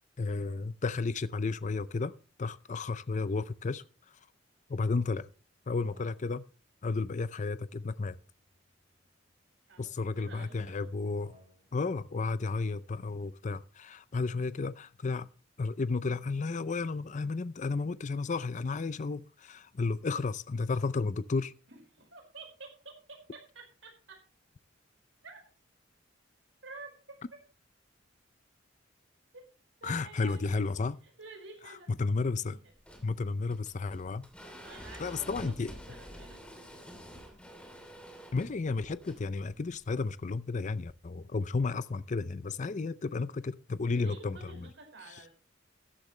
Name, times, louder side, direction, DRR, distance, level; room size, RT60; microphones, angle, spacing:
voice 1, 0.2-2.1 2.4-4.2 4.7-5.3 5.7-6.5 6.8-8.2 9.8-11.4 11.7-15.3 15.6-21.5 29.8-31.0 31.7-32.6 33.0-34.3 35.0-35.7 38.3-44.7 45.1-45.2, left 4 dB, 40° left, 0.5 m, -33 dB
sound 1, 5.6-6.7 7.9-9.6 10.9-11.9, left 1 dB, 30° right, 2.9 m, -64 dB
voice 2, 9.7-10.9 21.7-24.2 25.2-25.4 26.6-27.4 29.3-29.4 29.8-30.6 31.2-31.9 32.4-32.7 34.6-36.4 44.0-45.3, right 3 dB, 70° right, 5.2 m, -50 dB
sound 2, 32.7-40.6, equal, 5° left, 3.0 m, -49 dB
14.0 x 12.0 x 3.2 m
head